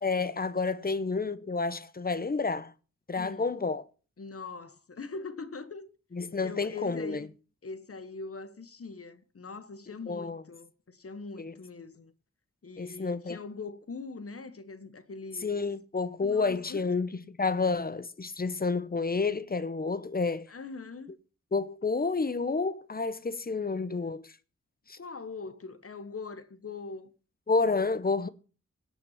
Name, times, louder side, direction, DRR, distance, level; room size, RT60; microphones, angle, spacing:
voice 1, 0.0-2.7 3.1-3.8 6.1-7.3 10.1-10.4 11.4-11.5 12.8-13.4 15.4-17.1 17.4-20.5 21.5-24.3 24.9-25.0 27.5-28.3, left 4 dB, 30° left, 0.8 m, -30 dB
voice 2, 3.2-3.5 4.2-5.9 6.4-7.3 7.6-12.1 12.6-15.6 16.2-17.0 20.5-21.1 25.0-27.1, left 4 dB, 50° left, 1.2 m, -42 dB
17.5 x 5.8 x 5.7 m
wide cardioid pair, 70°, 30 cm